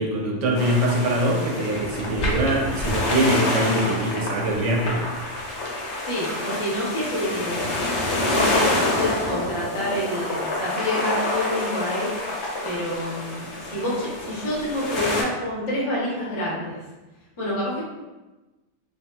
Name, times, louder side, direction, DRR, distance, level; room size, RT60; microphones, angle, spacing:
voice 1, 0.0-5.1, right 1 dB, 70° right, 0 dB, 0.9 m, -23 dB
sound 1, 0.5-15.2, left 1 dB, 65° left, 0.9 m, -27 dB
voice 2, 6.0-7.8 8.2-12.4 12.6-16.8 17.4-17.8, left 1 dB, 30° left, -6 dB, 0.6 m, -28 dB
3.4 x 2.3 x 2.2 m, 1.1 s
omnidirectional pair, 1.4 m